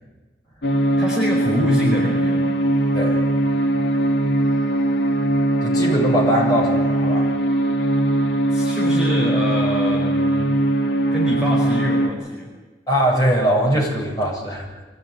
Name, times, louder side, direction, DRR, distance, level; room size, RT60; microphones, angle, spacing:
sound 1, 0.6-12.1, right 1 dB, 85° left, 2.1 m, -20 dB
voice 1, 1.0-2.5 8.5-10.5 11.1-12.5, equal, 5° right, -4 dB, 4.9 m, -25 dB
voice 2, 5.6-7.2 12.9-14.7, equal, 20° left, -3 dB, 7.6 m, -21 dB
24.5 x 16.5 x 9.6 m, 1.2 s
head